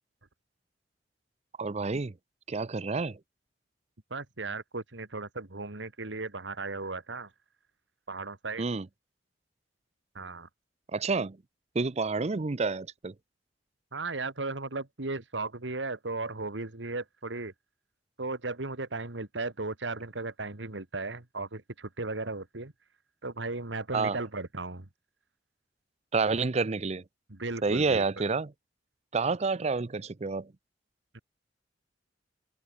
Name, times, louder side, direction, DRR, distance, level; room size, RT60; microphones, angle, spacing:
voice 1, 1.6-2.1 2.5-3.2 8.6-8.9 10.9-11.4 11.7-13.1 23.9-24.2 26.1-27.0 27.6-28.5 29.1-30.5, right 4 dB, 35° right, 0.6 m, -29 dB
voice 2, 4.1-7.3 8.1-8.6 10.1-10.5 13.9-17.5 18.2-22.7 23.2-24.9 27.3-28.0 31.1-31.2, right 3 dB, 90° right, 2.0 m, -36 dB
open air
head